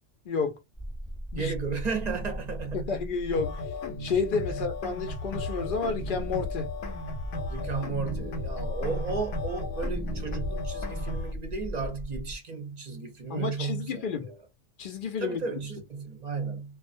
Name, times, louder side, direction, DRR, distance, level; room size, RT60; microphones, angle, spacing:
voice 1, 0.3-0.6 1.3-1.5 2.7-3.6 4.0-6.7 13.3-14.3 14.8-15.4, left 5 dB, 60° left, 0.6 m, -30 dB
sound 1, 0.7-12.4, equal, ahead, 0.8 m, -37 dB
voice 2, 1.3-2.9 4.5-4.6 7.5-14.3 15.2-16.8, right 4 dB, 45° right, 0.6 m, -34 dB
sound 2, 3.3-11.3, left 3 dB, 80° left, 0.9 m, -36 dB
2.4 x 2.1 x 2.5 m
omnidirectional pair, 1.3 m